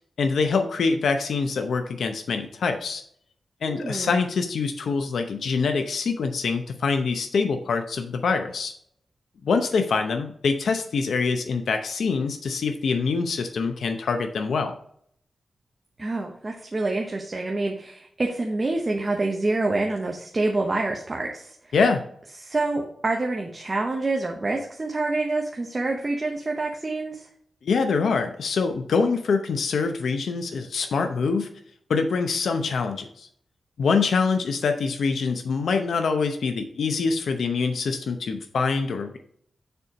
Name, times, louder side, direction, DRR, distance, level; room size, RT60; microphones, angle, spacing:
voice 1, 0.2-3.0 3.6-8.7 9.4-14.7 21.7-22.0 27.6-31.5 31.9-33.3 33.8-39.2, left 4 dB, 80° left, 6 dB, 0.7 m, -25 dB
voice 2, 3.6-4.2 16.0-21.6 22.4-27.3, right 2 dB, 25° right, 1 dB, 0.9 m, -27 dB
6.9 x 4.4 x 5.0 m, 0.65 s
wide cardioid pair, 145°, 0 cm